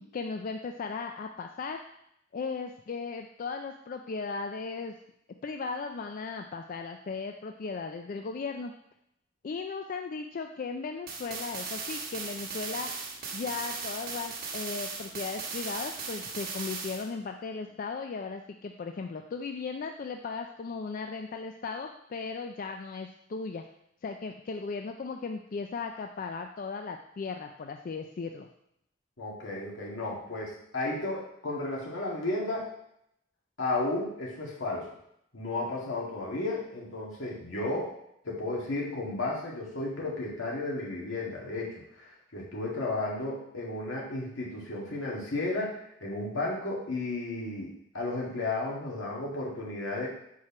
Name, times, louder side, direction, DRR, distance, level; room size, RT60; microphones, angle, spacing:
voice 1, 0.0-1.8 2.3-5.0 5.4-8.7 9.4-12.9 13.3-23.6 24.0-28.5, left 4 dB, 45° left, 4 dB, 0.3 m, -37 dB
sound 1, 11.1-17.1, right 4 dB, 50° right, 1.1 m, -37 dB
voice 2, 29.2-32.7 33.6-34.9 35.3-37.9 38.2-50.1, left 2 dB, 80° left, -4 dB, 1.9 m, -33 dB
4.7 x 4.4 x 5.8 m, 0.76 s
head